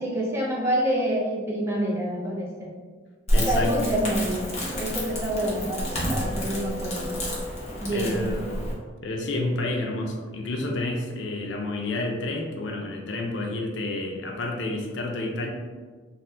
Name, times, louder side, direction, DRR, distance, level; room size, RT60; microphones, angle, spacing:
voice 1, 0.0-2.7 3.3-7.2 7.8-8.3, right 1 dB, 15° right, -4 dB, 0.4 m, -27 dB
voice 2, 3.3-3.7 7.9-8.7 9.0-15.5, left 2 dB, 65° left, 1 dB, 0.4 m, -29 dB
Crackle, 3.3-8.7, equal, 35° left, 0.7 m, -29 dB
2.7 x 2.1 x 3.3 m, 1.5 s
head